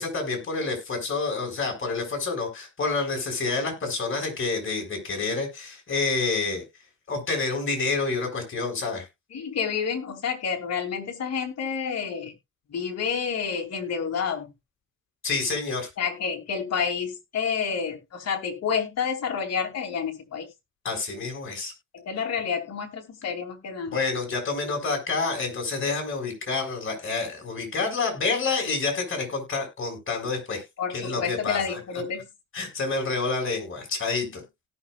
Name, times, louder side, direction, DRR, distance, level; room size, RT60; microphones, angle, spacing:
voice 1, 0.0-6.6 7.1-9.1 15.2-15.9 20.8-21.7 23.9-30.6 30.9-31.8 32.5-34.4, left 4 dB, 40° left, 1 dB, 6.1 m, -28 dB
voice 2, 9.3-12.3 12.7-14.5 16.0-20.5 21.9-24.0 30.8-32.2, left 6 dB, 60° left, 2 dB, 2.9 m, -29 dB
17.5 x 6.5 x 2.4 m, 0.22 s
cardioid pair, 90°, 30 cm